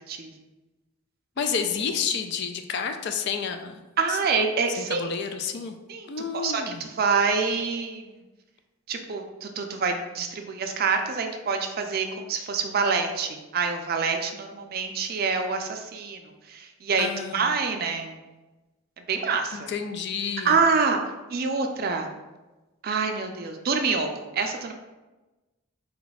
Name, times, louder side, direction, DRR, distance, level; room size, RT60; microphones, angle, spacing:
voice 1, 1.4-3.8 4.1-4.2 4.8-5.8 6.1-6.8 17.0-17.5 19.5-20.6, left 6 dB, 50° left, 7 dB, 0.3 m, -30 dB
voice 2, 4.0-5.1 5.9-6.1 6.4-8.1 8.9-16.2 16.5-18.2 19.1-19.7 20.4-21.0 21.3-22.1 22.8-24.7, right 5 dB, 45° right, 5 dB, 0.4 m, -26 dB
3.9 x 2.3 x 4.0 m, 1.1 s
head